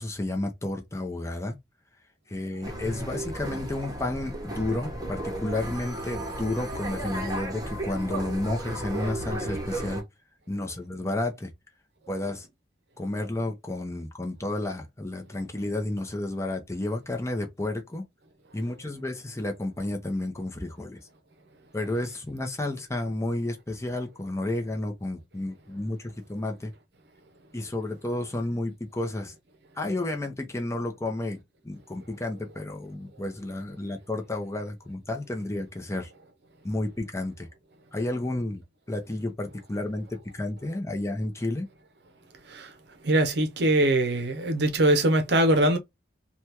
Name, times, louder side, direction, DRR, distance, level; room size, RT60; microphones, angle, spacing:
voice 1, 0.0-1.6 2.3-10.0 10.5-11.5 12.1-12.5 13.0-18.0 18.5-21.0 21.7-26.7 27.5-29.3 29.8-31.4 31.6-36.1 36.6-37.5 37.9-38.6 38.9-40.0 40.3-41.7, left 1 dB, 15° left, 0.7 m, -31 dB
sound 1, 2.6-10.0, right 1 dB, 20° right, 0.9 m, -34 dB
voice 2, 43.0-45.8, right 1 dB, 70° right, 0.7 m, -22 dB
3.3 x 2.3 x 2.9 m
head